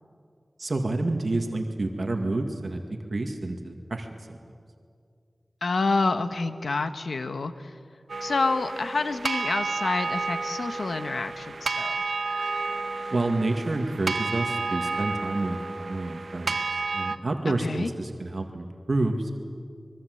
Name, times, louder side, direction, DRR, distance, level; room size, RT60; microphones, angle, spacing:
voice 1, 0.6-4.4 13.1-16.6 16.9-19.3, right 2 dB, 55° right, 4 dB, 2.0 m, -29 dB
voice 2, 5.6-7.5 8.2-12.0 17.6-17.9, left 3 dB, 90° left, 9 dB, 1.3 m, -28 dB
sound 1, 8.1-17.2, right 3 dB, 85° right, 1.0 m, -31 dB
25.0 x 23.0 x 7.9 m, 2.2 s
wide cardioid pair, 85°, 0 cm